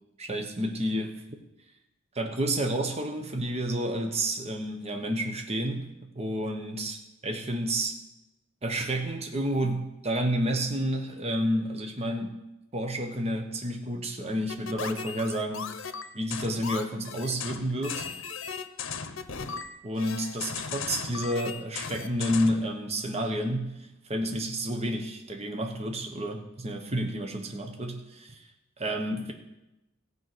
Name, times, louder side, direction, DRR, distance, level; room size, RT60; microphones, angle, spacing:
voice 1, 0.2-1.1 2.1-5.9 6.2-7.0 7.2-8.0 8.6-12.4 12.7-15.7 16.1-18.0 19.8-28.5 28.8-29.3, equal, 30° right, 3 dB, 1.1 m, -30 dB
sound 1, 14.5-22.7, left 6 dB, 65° left, 0.8 m, -37 dB
15.0 x 5.4 x 7.8 m, 0.93 s
head